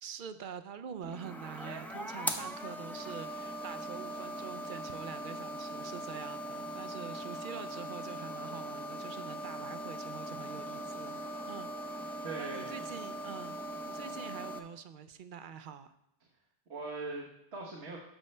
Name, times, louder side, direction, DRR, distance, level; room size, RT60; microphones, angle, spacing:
voice 1, 0.0-11.2 11.5-13.6 13.9-15.9, right 7 dB, 60° right, 11 dB, 0.6 m, -45 dB
sound 1, 1.0-14.6, equal, 5° left, 0.4 m, -40 dB
voice 2, 12.2-12.8 16.7-18.0, right 3 dB, 85° right, -3 dB, 1.5 m, -41 dB
13.5 x 5.4 x 3.2 m, 0.79 s
omnidirectional pair, 1.1 m